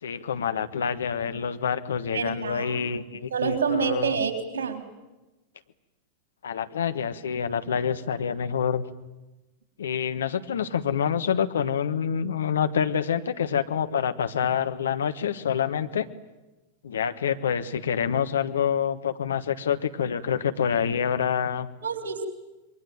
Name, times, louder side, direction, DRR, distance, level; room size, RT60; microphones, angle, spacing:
voice 1, 0.0-4.2 6.4-8.9 9.8-16.1 16.8-21.7, left 7 dB, 65° left, 9 dB, 1.4 m, -27 dB
voice 2, 2.1-2.8 3.3-4.8 21.8-22.3, right 6 dB, 65° right, 6 dB, 3.9 m, -27 dB
27.0 x 23.0 x 9.0 m, 1.1 s
figure-of-eight pair, 90°, 0 cm